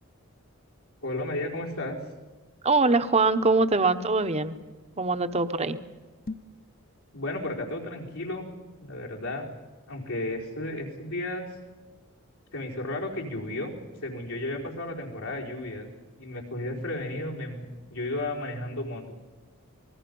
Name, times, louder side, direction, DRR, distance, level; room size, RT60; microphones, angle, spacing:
voice 1, 1.0-2.0 7.1-8.5 8.8-9.5 9.9-11.5 12.5-13.7 14.0-15.9 16.2-19.0, left 1 dB, 85° left, -2 dB, 4.6 m, -33 dB
voice 2, 2.6-4.5 5.0-5.8, right 3 dB, 30° right, 9 dB, 0.9 m, -23 dB
sound 1, 6.2-6.7, left 3 dB, 40° left, 0.8 m, -39 dB
27.5 x 20.0 x 5.4 m, 1.3 s
head